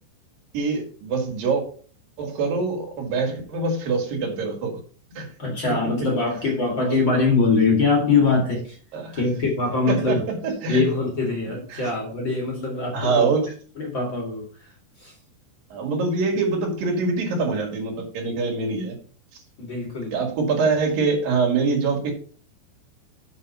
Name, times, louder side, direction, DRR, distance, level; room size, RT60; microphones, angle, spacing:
voice 1, 0.5-1.6 2.2-4.8 5.2-5.3 6.8-7.0 8.9-9.2 9.9-10.2 10.4-10.8 11.7-11.9 12.9-13.5 15.7-18.9 20.1-22.1, right 4 dB, 55° right, 2 dB, 3.2 m, -24 dB
voice 2, 5.1-8.8 9.1-10.3 10.7-13.3 13.7-15.1 19.6-20.2, left 4 dB, 50° left, 0 dB, 1.4 m, -23 dB
7.7 x 5.6 x 5.5 m, 0.42 s
omnidirectional pair, 5.6 m